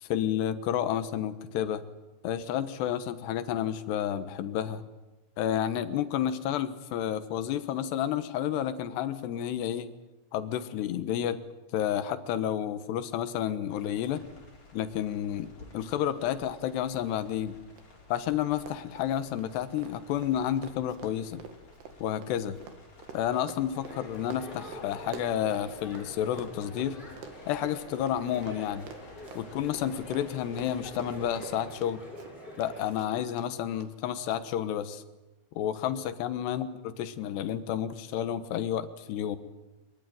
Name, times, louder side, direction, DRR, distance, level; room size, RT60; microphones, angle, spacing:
voice 1, 0.0-1.9 2.2-4.8 5.4-9.9 10.3-11.4 11.7-14.2 14.7-17.6 18.1-21.4 22.0-22.6 23.1-27.0 27.5-28.9 29.4-32.0 32.6-35.0 35.6-39.4, left 10 dB, 90° left, 12 dB, 3.4 m, -30 dB
sound 1, 13.7-31.7, left 3 dB, 45° left, 6.1 m, -54 dB
Run, 17.8-17.9 18.1-18.3 18.5-26.1 26.3-32.7 33.0-33.5 33.8-33.9 34.3-34.4, right 6 dB, 80° right, 4.2 m, -47 dB
sound 2, 23.7-33.0, equal, 25° left, 7.8 m, -46 dB
23.0 x 23.0 x 9.4 m, 1.1 s
omnidirectional pair, 4.7 m